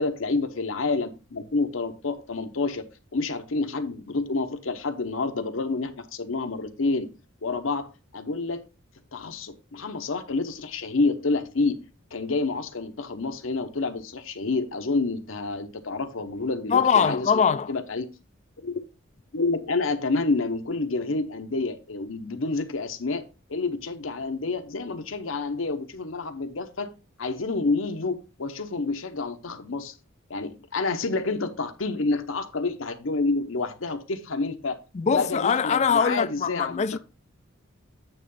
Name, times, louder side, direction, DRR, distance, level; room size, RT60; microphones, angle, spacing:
voice 1, 0.0-2.8 3.1-7.1 7.4-8.6 9.1-11.8 12.1-17.4 17.7-18.1 18.6-18.8 19.3-23.2 23.5-26.9 27.2-29.9 30.3-34.8 35.1-37.0, left 3 dB, 75° left, 0.9 m, -28 dB
voice 2, 16.7-17.7 34.9-37.0, left 6 dB, 35° left, 0.4 m, -22 dB
9.0 x 3.1 x 5.5 m
head